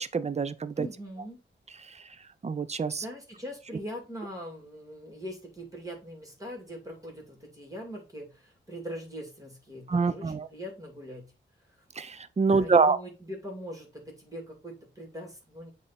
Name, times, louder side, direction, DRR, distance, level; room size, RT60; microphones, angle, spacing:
voice 1, 0.0-0.9 2.4-3.0 9.9-10.5 12.0-13.0, right 4 dB, 35° right, 0.5 m, -25 dB
voice 2, 0.8-1.4 3.0-11.3 12.5-15.7, equal, 15° right, 2.3 m, -41 dB
8.3 x 2.9 x 4.2 m
wide cardioid pair, 105°, 20 cm